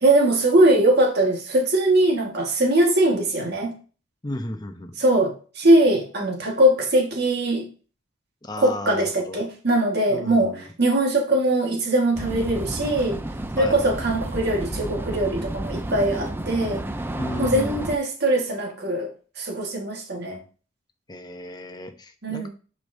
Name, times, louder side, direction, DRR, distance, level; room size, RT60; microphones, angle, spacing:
voice 1, 0.0-3.7 5.0-7.7 8.6-13.2 13.6-16.8 17.4-19.1 19.4-20.4 22.2-22.5, right 1 dB, 55° right, 1 dB, 1.6 m, -21 dB
voice 2, 4.2-5.0 8.4-9.4 10.1-10.7 13.6-13.8 17.2-17.9 21.1-22.5, left 1 dB, 20° left, 7 dB, 0.8 m, -33 dB
sound 1, 12.1-18.0, right 1 dB, 10° right, 0.4 m, -31 dB
9.7 x 5.0 x 2.7 m, 0.37 s
head